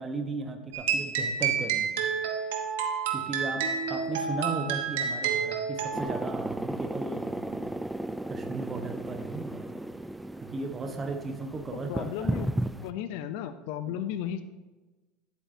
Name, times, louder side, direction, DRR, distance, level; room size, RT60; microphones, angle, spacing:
voice 1, 0.0-2.0 3.1-7.7 8.3-9.7 10.4-12.4 13.9-14.0, right 3 dB, 25° right, 5 dB, 1.1 m, -36 dB
sound 1, 0.7-6.0, right 6 dB, 85° right, 1.0 m, -29 dB
sound 2, 5.9-12.9, right 1 dB, 5° right, 0.3 m, -34 dB
voice 2, 11.7-12.5 12.8-14.4, left 10 dB, 75° left, 11 dB, 0.5 m, -34 dB
10.5 x 8.0 x 2.7 m, 1.2 s
supercardioid pair, 115°, 0 cm